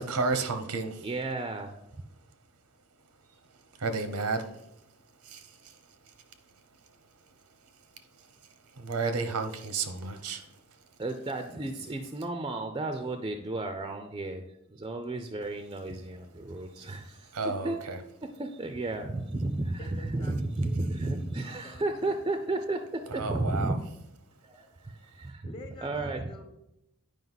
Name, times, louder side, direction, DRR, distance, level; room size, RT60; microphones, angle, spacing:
voice 1, 0.0-1.1 3.4-10.9 17.1-18.0 23.1-23.8, right 3 dB, 85° right, 0.9 m, -34 dB
voice 2, 1.0-1.7 11.0-14.4 14.7-17.8 18.4-23.8 24.4-25.5 25.8-26.3, right 2 dB, 20° right, 0.4 m, -33 dB
voice 3, 19.8-22.4 25.4-26.4, left 1 dB, 25° left, 0.9 m, -48 dB
9.2 x 5.1 x 4.0 m
head